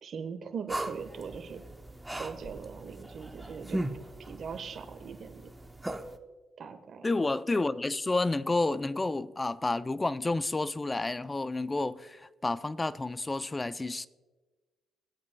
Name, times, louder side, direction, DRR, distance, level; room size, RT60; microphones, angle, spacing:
voice 1, 0.0-1.6 2.1-3.8 4.2-5.5 6.6-7.1, right 6 dB, 55° right, 1.3 m, -40 dB
sound 1, 0.7-6.2, right 1 dB, 10° right, 0.8 m, -39 dB
voice 2, 7.0-14.1, left 2 dB, 20° left, 0.4 m, -30 dB
21.5 x 8.3 x 2.3 m
cardioid pair, 90°, 0 cm